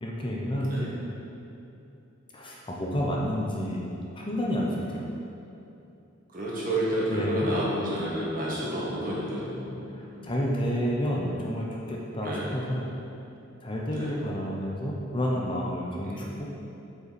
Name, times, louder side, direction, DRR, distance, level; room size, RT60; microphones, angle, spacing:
voice 1, 0.0-0.9 2.3-3.9 4.1-5.1 7.1-7.5 9.9-12.9 13.6-16.5, equal, 25° left, -3 dB, 0.7 m, -30 dB
voice 2, 6.3-9.8 10.1-10.3 12.2-12.5 13.9-14.1 16.0-16.3, right 1 dB, 45° right, -6 dB, 1.9 m, -30 dB
8.5 x 5.6 x 4.3 m, 2.7 s
head